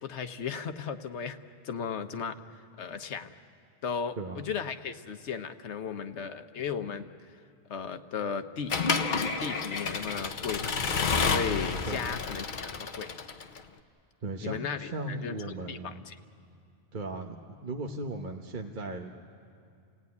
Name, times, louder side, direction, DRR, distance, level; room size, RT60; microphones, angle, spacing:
voice 1, 0.0-1.4 1.6-2.4 2.8-3.3 3.8-7.1 7.7-8.7 9.4-10.7 11.2-13.1 14.4-16.2, left 6 dB, 85° left, 9 dB, 1.2 m, -35 dB
Accelerating revving vroom / Mechanisms, 8.7-13.6, left 5 dB, 50° left, 1.0 m, -30 dB
voice 2, 11.9-12.2 14.2-16.0 16.9-19.2, right 2 dB, 45° right, 3 dB, 1.2 m, -37 dB
29.5 x 16.5 x 9.6 m, 2.4 s
omnidirectional pair, 1.1 m